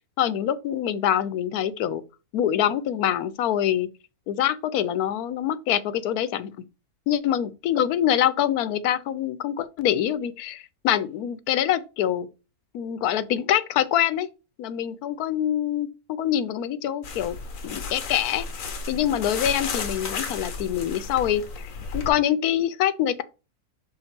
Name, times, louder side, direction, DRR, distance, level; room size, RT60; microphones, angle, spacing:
voice 1, 0.2-2.0 2.3-3.9 4.3-6.5 7.1-12.3 12.7-14.3 14.6-17.4 17.6-18.5 18.9-23.2, left 10 dB, 90° left, 1.1 m, -25 dB
sound 1, 17.0-22.1, left 4 dB, 65° left, 1.4 m, -33 dB
5.8 x 4.2 x 4.3 m
omnidirectional pair, 1.6 m